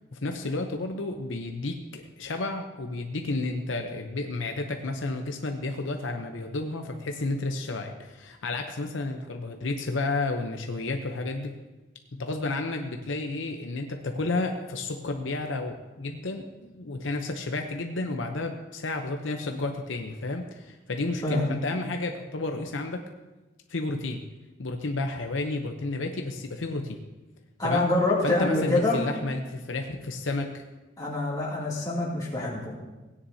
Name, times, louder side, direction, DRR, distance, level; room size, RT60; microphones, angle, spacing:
voice 1, 0.1-11.5 12.1-23.0 23.7-24.2 24.6-27.0 27.6-27.9 28.2-30.6, left 2 dB, 75° left, 4 dB, 0.8 m, -31 dB
voice 2, 21.2-21.6 27.6-29.0 31.0-32.8, left 2 dB, 20° left, -5 dB, 2.6 m, -26 dB
17.0 x 9.8 x 2.8 m, 1.1 s
head